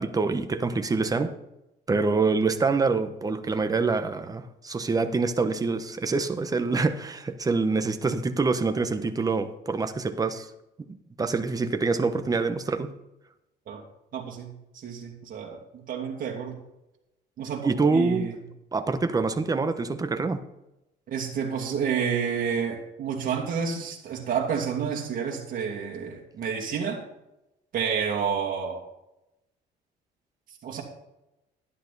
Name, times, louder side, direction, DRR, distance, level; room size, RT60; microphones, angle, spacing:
voice 1, 0.0-1.3 1.9-10.5 11.2-12.9 17.6-18.3 18.7-20.4, right 4 dB, 20° right, 8 dB, 1.1 m, -25 dB
voice 2, 14.1-16.6 17.4-18.3 21.1-27.0 27.7-28.8 30.6-30.8, right 7 dB, 55° right, -1 dB, 2.5 m, -30 dB
11.5 x 11.0 x 4.1 m, 0.91 s
cardioid pair, 110°, 17 cm